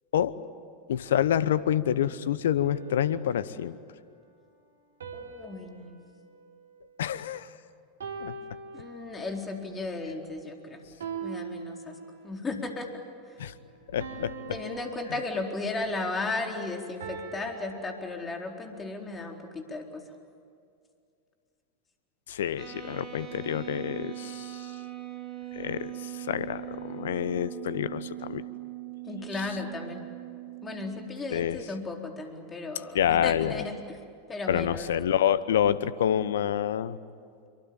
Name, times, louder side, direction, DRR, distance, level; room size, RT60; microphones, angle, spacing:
voice 1, 0.9-3.8 7.0-7.5 8.2-8.3 13.4-13.5 13.9-14.3 22.3-24.7 25.5-28.4 31.3-31.6 32.9-33.6 34.5-37.0, left 10 dB, 70° left, 16 dB, 1.0 m, -27 dB
sound 1, 2.6-3.8 5.0-7.4 8.0-9.5 11.0-12.5 14.0-15.9 17.0-18.6, right 5 dB, 75° right, 3.1 m, -43 dB
voice 2, 5.1-6.0 8.7-10.8 11.2-11.9 12.2-12.9 14.5-20.0 29.1-30.1 30.6-33.7 34.3-34.9, left 3 dB, 20° left, 2 dB, 4.1 m, -35 dB
sound 2, 22.6-31.1, right 16 dB, 40° right, 5.3 m, -40 dB
26.5 x 23.5 x 8.9 m, 2.3 s
figure-of-eight pair, 90°, 0 cm